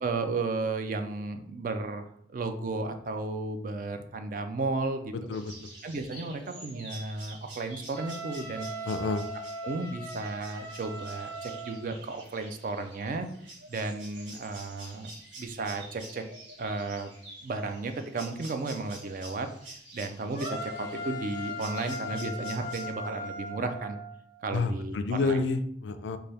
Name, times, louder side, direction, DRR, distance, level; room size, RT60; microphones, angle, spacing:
voice 1, 0.0-2.0 2.3-5.1 5.8-8.7 9.6-13.3 13.7-16.2 16.6-17.1 17.4-24.0 24.4-25.4, right 3 dB, 45° right, 7 dB, 0.4 m, -34 dB
sound 1, 5.3-22.9, right 1 dB, 90° right, 1.3 m, -48 dB
Wind instrument woodwind instrument, 7.9-11.9, right 3 dB, 10° left, 0.5 m, -40 dB
voice 2, 8.9-9.2 24.5-26.2, left 3 dB, 80° left, 9 dB, 0.3 m, -29 dB
sound 2, 20.3-24.4, left 2 dB, 30° right, 1.0 m, -38 dB
4.0 x 2.2 x 3.3 m, 0.67 s
head